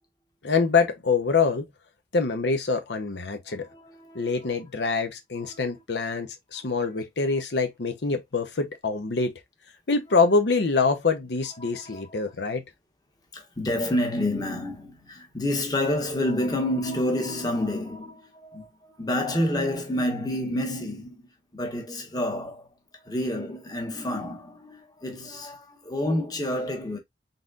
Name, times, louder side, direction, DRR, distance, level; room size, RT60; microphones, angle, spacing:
voice 1, 0.4-1.7 2.1-3.7 4.1-9.3 9.9-12.6, left 4 dB, 80° left, 0.8 m, -25 dB
voice 2, 3.4-4.5 4.9-5.0 5.4-5.6 6.5-6.9 10.9-11.0 11.6-12.2 13.3-21.3 21.5-22.7 23.0-27.0, left 1 dB, 20° left, 1.2 m, -29 dB
4.1 x 3.8 x 2.4 m
head